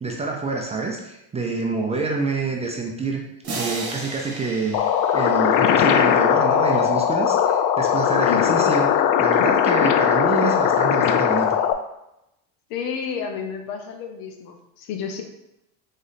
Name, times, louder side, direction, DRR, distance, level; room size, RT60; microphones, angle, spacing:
voice 1, 0.0-3.2 3.6-8.9 9.2-11.6, right 4 dB, 15° right, 0 dB, 0.4 m, -27 dB
sound 1, 3.4-6.3, right 3 dB, 35° right, 1.2 m, -34 dB
sound 2, 4.7-11.7, left 9 dB, 50° left, 0.4 m, -19 dB
voice 2, 8.3-8.8 12.7-15.2, left 7 dB, 65° left, 5 dB, 0.8 m, -30 dB
4.2 x 3.0 x 4.0 m, 0.87 s
supercardioid pair, 120°, 42 cm